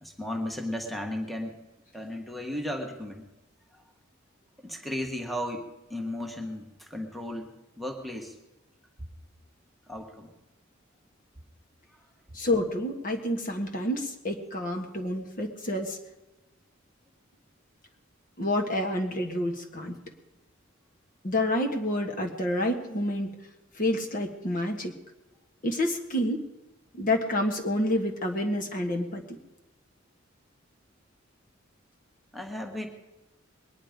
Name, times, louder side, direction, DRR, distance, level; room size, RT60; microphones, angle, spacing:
voice 1, 0.0-1.6 1.9-3.2 4.6-7.5 7.8-8.3 9.9-10.3 32.3-32.9, left 1 dB, ahead, 3 dB, 1.4 m, -35 dB
voice 2, 12.3-16.0 18.4-20.0 21.2-23.3 23.7-24.9 25.6-26.4 26.9-29.4, left 1 dB, 45° left, 2 dB, 1.7 m, -28 dB
22.0 x 10.0 x 5.1 m, 1.0 s
head